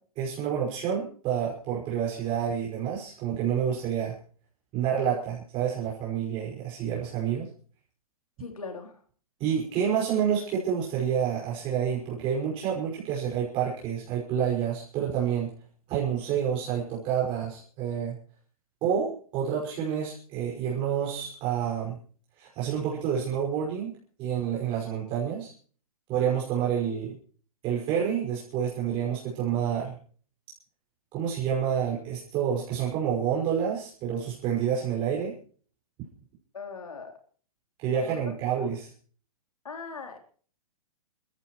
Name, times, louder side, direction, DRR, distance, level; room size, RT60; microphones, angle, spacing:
voice 1, 0.2-4.2 4.7-7.5 9.4-15.5 15.9-18.1 18.8-22.0 22.4-23.9 24.2-25.5 26.1-27.2 27.6-29.9 31.1-35.3 37.8-38.9, right 8 dB, 30° right, -4 dB, 5.6 m, -28 dB
voice 2, 8.4-9.0 36.5-37.1 38.0-38.5 39.6-40.2, left 4 dB, 75° left, 4 dB, 3.7 m, -40 dB
28.0 x 14.5 x 3.2 m, 0.43 s
figure-of-eight pair, 120°, 18 cm